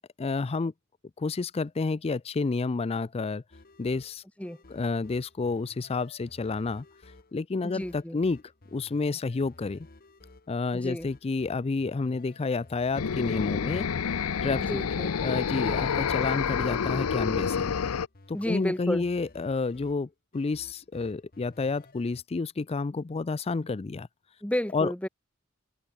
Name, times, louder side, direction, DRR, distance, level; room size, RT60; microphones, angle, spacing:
voice 1, 0.2-0.7 1.2-3.4 3.8-4.2 4.7-6.8 7.3-8.4 8.7-9.9 10.5-13.9 14.4-14.7 15.2-17.7 18.3-24.1 24.7-24.9, left 3 dB, 30° left, 0.4 m, -30 dB
sound 1, 3.5-22.2, left 2 dB, 45° left, 1.4 m, -55 dB
voice 2, 7.6-8.2 10.7-11.1 14.6-15.1 18.3-19.1 24.4-25.1, equal, 5° left, 1.3 m, -32 dB
sound 2, 12.9-18.1, left 6 dB, 85° left, 0.6 m, -28 dB
head